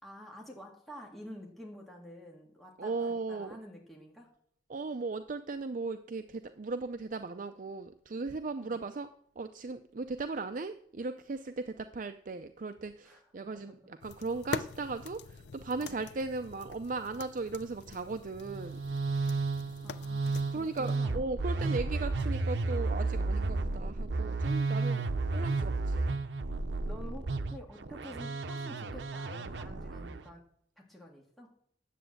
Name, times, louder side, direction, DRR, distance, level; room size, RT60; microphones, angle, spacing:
voice 1, 0.0-4.3 8.6-8.8 13.0-13.9 15.8-16.0 19.8-21.8 26.9-30.4 30.9-31.6, equal, ahead, -2 dB, 1.9 m, -49 dB
voice 2, 2.8-3.6 4.7-19.0 20.5-25.1 25.3-26.1, right 3 dB, 50° right, 9 dB, 0.5 m, -37 dB
sound 1, 14.0-21.0, left 5 dB, 75° left, 0.6 m, -44 dB
Musical instrument, 18.4-30.2, right 3 dB, 80° right, 0.7 m, -32 dB
10.0 x 7.9 x 7.8 m, 0.66 s
head